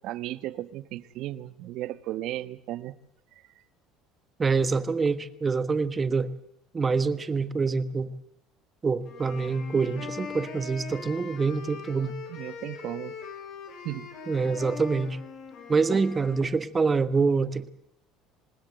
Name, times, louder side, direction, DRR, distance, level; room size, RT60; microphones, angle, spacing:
voice 1, 0.0-2.9 12.3-13.2 13.8-14.1 15.9-16.0, right 14 dB, 65° right, 1.1 m, -35 dB
voice 2, 4.4-6.3 6.7-8.1 8.8-12.1 14.3-15.2 15.7-17.7, right 4 dB, 25° right, 1.4 m, -26 dB
sound 1, 9.0-16.5, left 5 dB, 60° left, 7.9 m, -41 dB
25.5 x 19.5 x 8.0 m
supercardioid pair, 110°, 0 cm